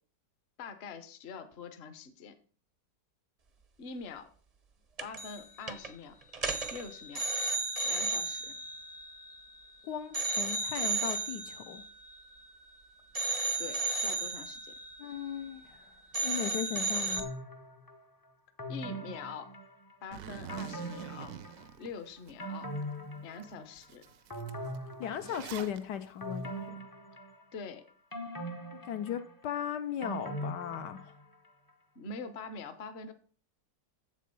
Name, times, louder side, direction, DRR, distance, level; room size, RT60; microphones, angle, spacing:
voice 1, 0.6-2.3 3.8-4.3 5.0-6.1 6.7-7.2 7.8-8.5 13.6-14.7 18.7-19.5 20.0-21.3 21.8-22.7 23.2-24.0 27.5-27.9 31.9-33.1, left 4 dB, 45° left, 1.0 m, -44 dB
sound 1, 5.0-5.4 5.7-5.9 6.3-9.7 10.1-12.7 13.1-15.8 16.1-17.2, right 2 dB, 40° right, 0.5 m, -34 dB
voice 2, 9.8-11.8 15.0-15.9 16.2-17.2 25.0-26.8 28.9-31.1, left 9 dB, 75° left, 1.3 m, -37 dB
sound 2, 17.2-18.0 18.6-20.0 20.5-21.8 22.2-23.8 24.3-25.6 26.2-27.7 28.1-31.4 31.7-31.8, right 1 dB, 25° left, 0.5 m, -41 dB
Zipper (clothing), 20.1-22.3 22.8-22.9 23.4-23.5 23.8-25.8, right 9 dB, 65° right, 0.9 m, -46 dB
7.5 x 7.4 x 5.4 m
omnidirectional pair, 1.9 m